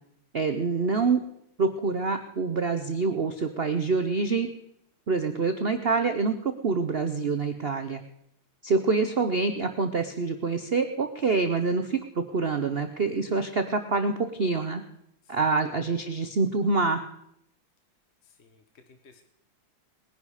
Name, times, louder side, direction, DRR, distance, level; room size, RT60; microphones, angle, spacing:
voice 1, 0.3-1.2 1.6-4.5 5.1-8.0 8.6-14.8 15.3-17.0, right 4 dB, 75° right, 7 dB, 0.5 m, -26 dB
voice 2, 15.2-15.6 18.2-19.2, left 4 dB, 40° left, 6 dB, 1.1 m, -58 dB
20.5 x 10.5 x 4.9 m, 0.76 s
omnidirectional pair, 2.3 m